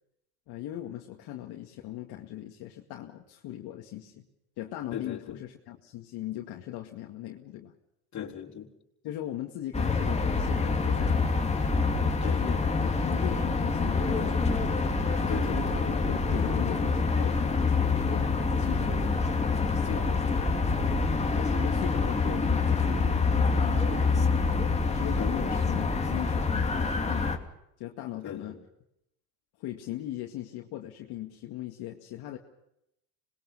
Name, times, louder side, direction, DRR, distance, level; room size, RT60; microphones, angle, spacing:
voice 1, 0.5-4.3 4.6-7.7 9.0-11.4 12.2-14.6 15.5-19.3 21.4-27.3 27.8-28.6 29.6-32.4, left 13 dB, 60° left, 2.3 m, -39 dB
voice 2, 4.9-5.4 8.1-8.7 12.2-12.4 15.3-15.6 19.8-20.4 25.2-25.5 28.2-28.6, left 9 dB, 40° left, 4.1 m, -38 dB
sound 1, 9.7-27.4, left 4 dB, 15° left, 2.7 m, -26 dB
26.5 x 21.0 x 5.7 m
supercardioid pair, 95°, 44 cm